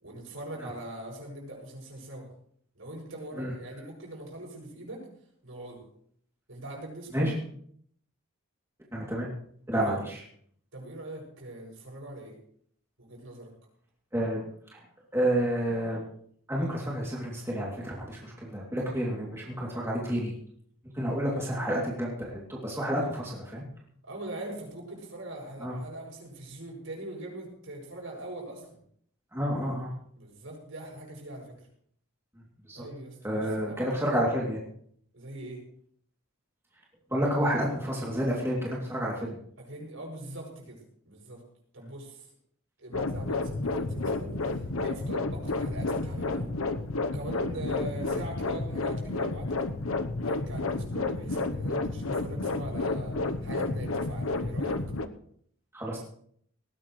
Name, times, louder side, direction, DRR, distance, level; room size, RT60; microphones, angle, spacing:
voice 1, 0.0-2.3 2.7-5.1 5.4-5.8 6.5-7.3 9.7-10.0 10.7-12.3 13.0-13.5 21.2-21.3 24.0-28.8 30.1-31.5 32.7-33.9 35.1-35.6 39.6-41.4 41.7-42.3 42.8-46.5 47.0-49.7 50.2-53.2 53.4-54.8, right 1 dB, 65° right, 0 dB, 7.4 m, -41 dB
voice 2, 8.9-9.3 9.7-10.2 14.1-14.4 14.7-14.8 15.1-16.0 16.5-20.3 20.9-23.6 25.6-25.7 29.3-29.9 32.6-32.8 33.2-34.6 37.1-39.4 55.7-56.0, equal, 10° right, -4 dB, 2.8 m, -30 dB
sound 1, 42.9-55.1, left 3 dB, 80° left, 1.0 m, -31 dB
19.5 x 17.5 x 3.2 m, 0.63 s
head